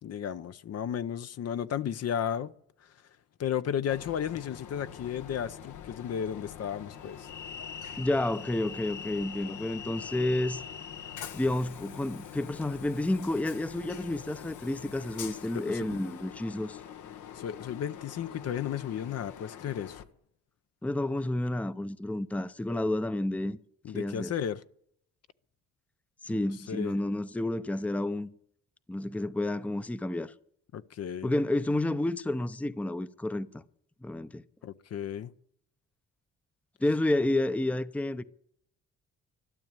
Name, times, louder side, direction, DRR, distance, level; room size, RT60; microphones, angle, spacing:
voice 1, 0.0-2.5 3.4-7.3 15.5-15.8 17.3-20.0 23.8-24.6 26.3-26.4 26.7-26.9 30.7-31.3 34.6-35.3, left 9 dB, 55° left, 0.7 m, -34 dB
Train, 3.9-20.0, left 8 dB, 80° left, 1.2 m, -44 dB
voice 2, 8.0-10.6 11.3-16.8 20.8-23.6 23.9-24.3 26.2-28.3 28.9-30.3 31.2-33.6 34.0-34.4 36.8-38.2, left 1 dB, 5° left, 0.6 m, -30 dB
12.5 x 12.0 x 8.9 m
cardioid pair, 90°, 30 cm